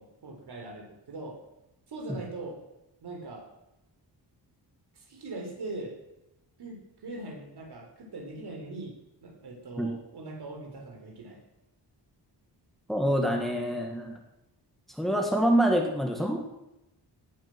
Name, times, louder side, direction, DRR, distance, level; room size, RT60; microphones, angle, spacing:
voice 1, 0.0-1.4 1.9-2.6 3.0-3.5 4.9-6.0 6.6-8.9 9.2-11.4, right 2 dB, 65° right, 2 dB, 4.0 m, -41 dB
voice 2, 12.9-14.1 15.0-16.4, equal, ahead, 2 dB, 1.9 m, -26 dB
18.0 x 8.8 x 6.2 m, 0.90 s
wide cardioid pair, 150°, 42 cm